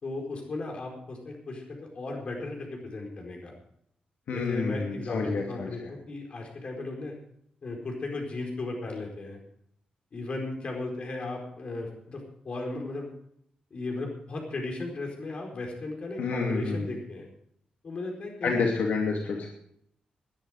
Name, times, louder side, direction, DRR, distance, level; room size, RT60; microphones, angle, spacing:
voice 1, 0.0-3.6 4.3-7.1 7.6-9.4 10.1-13.1 13.7-17.3 17.8-18.8, left 2 dB, 45° left, 1 dB, 4.6 m, -36 dB
voice 2, 4.3-5.7 16.2-16.8 18.4-19.5, left 4 dB, 75° left, 0 dB, 2.7 m, -28 dB
19.0 x 10.5 x 5.0 m, 0.70 s
wide cardioid pair, 135°, 3 cm